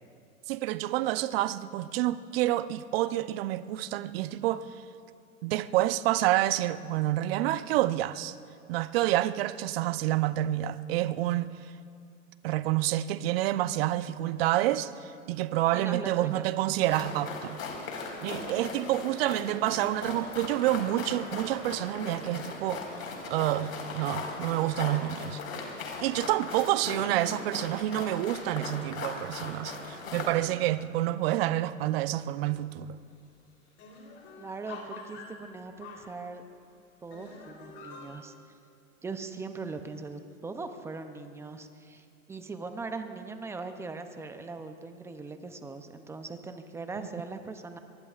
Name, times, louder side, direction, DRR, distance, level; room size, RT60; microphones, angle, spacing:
voice 1, 0.5-4.6 5.4-8.4 8.7-11.5 12.4-17.6 18.2-22.8 23.3-25.4 26.0-32.9 47.0-47.1, right 14 dB, 45° right, 0.7 m, -28 dB
voice 2, 15.7-16.4 34.4-36.4 37.0-38.3 39.0-47.8, right 4 dB, 5° right, 0.5 m, -40 dB
sound 1, 16.8-30.4, left 4 dB, 75° left, 4.6 m, -38 dB
sound 2, 32.4-32.8 33.1-33.2 33.5-36.6 37.1-38.2, left 4 dB, 30° left, 3.4 m, -47 dB
23.5 x 23.5 x 2.4 m
hypercardioid pair, 125°, 42 cm